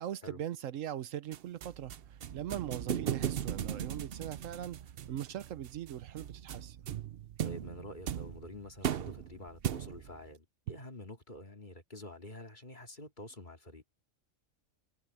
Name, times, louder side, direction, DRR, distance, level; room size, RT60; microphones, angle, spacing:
voice 1, 0.0-4.8 5.1-6.9 10.7-10.8, right 11 dB, 80° right, 1.1 m, -40 dB
sound 1, 1.3-10.2, right 9 dB, 55° right, 0.8 m, -38 dB
voice 2, 7.4-13.8, left 1 dB, 35° left, 2.6 m, -48 dB
omnidirectional pair, 1.3 m